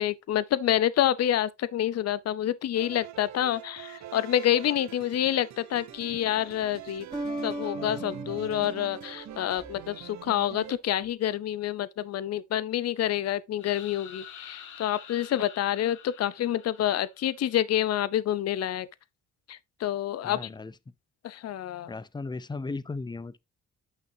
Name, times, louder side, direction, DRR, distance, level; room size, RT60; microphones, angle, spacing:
voice 1, 0.0-7.1 7.4-18.9 19.5-20.5 21.2-21.9, left 11 dB, 55° left, 0.7 m, -28 dB
sound 1, 2.8-10.8, right 12 dB, 65° right, 0.9 m, -44 dB
sound 2, 5.9-6.4 7.1-10.0, right 1 dB, 15° right, 2.9 m, -38 dB
sound 3, 13.6-17.4, left 8 dB, 75° left, 1.6 m, -47 dB
voice 2, 20.2-20.7 21.9-23.4, left 3 dB, 15° left, 0.5 m, -36 dB
9.1 x 5.8 x 2.7 m
cardioid pair, 90°, 30 cm